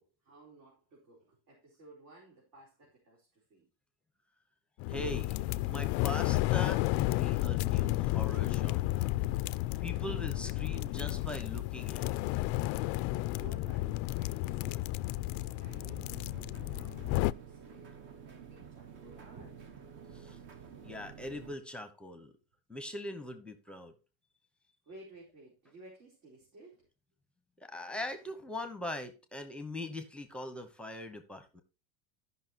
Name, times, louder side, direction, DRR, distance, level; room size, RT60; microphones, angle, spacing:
voice 1, 0.0-3.7 12.7-12.9 13.3-16.1 16.5-19.9 24.9-26.9, right 2 dB, 60° right, 4.4 m, -56 dB
sound 1, 4.8-17.3, left 18 dB, 50° left, 0.4 m, -32 dB
voice 2, 4.9-9.1 9.8-12.2 20.1-20.4 20.8-22.3 22.7-23.9 27.6-31.6, left 1 dB, 5° left, 1.0 m, -41 dB
sound 2, 15.7-21.6, right 7 dB, 40° right, 1.2 m, -50 dB
14.5 x 5.7 x 2.9 m
supercardioid pair, 140°, 30 cm